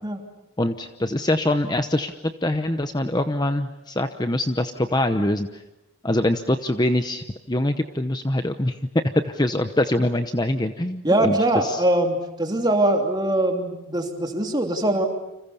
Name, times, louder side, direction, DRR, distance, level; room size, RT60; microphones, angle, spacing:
voice 1, 0.6-2.1 2.4-5.6 6.0-8.8 9.2-11.4 11.6-11.8, left 1 dB, 20° left, 8 dB, 0.9 m, -24 dB
voice 2, 11.0-15.1, right 1 dB, 20° right, 3 dB, 3.0 m, -22 dB
30.0 x 26.5 x 7.0 m, 0.93 s
head